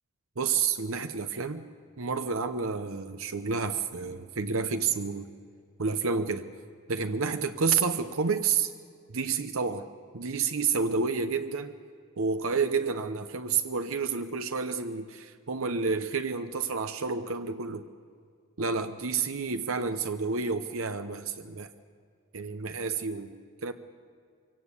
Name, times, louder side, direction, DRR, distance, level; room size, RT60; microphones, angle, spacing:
voice 1, 0.4-1.6 2.0-5.3 5.8-6.5 6.9-8.7 9.1-9.8 10.1-11.8 12.2-17.8 18.6-21.7 22.3-23.3 23.6-23.7, right 5 dB, 70° right, 8 dB, 0.9 m, -29 dB
24.5 x 17.0 x 8.3 m, 2.2 s
head